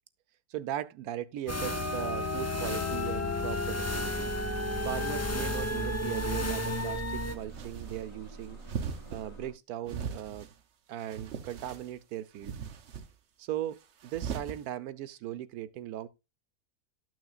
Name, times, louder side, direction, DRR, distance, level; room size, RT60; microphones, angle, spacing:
voice 1, 0.5-4.3 4.8-8.6 9.1-10.5 10.9-12.5 13.4-16.1, right 11 dB, 80° right, 1.2 m, -38 dB
sound 1, 1.5-7.4, left 1 dB, 20° left, 0.4 m, -32 dB
sound 2, 3.8-9.5, right 3 dB, 55° left, 4.8 m, -47 dB
sound 3, 6.4-6.9 7.4-8.0 8.6-9.2 9.8-10.5 11.0-11.9 12.4-13.0 14.0-14.6, right 7 dB, 55° right, 1.0 m, -39 dB
12.5 x 6.2 x 2.4 m
omnidirectional pair, 1.6 m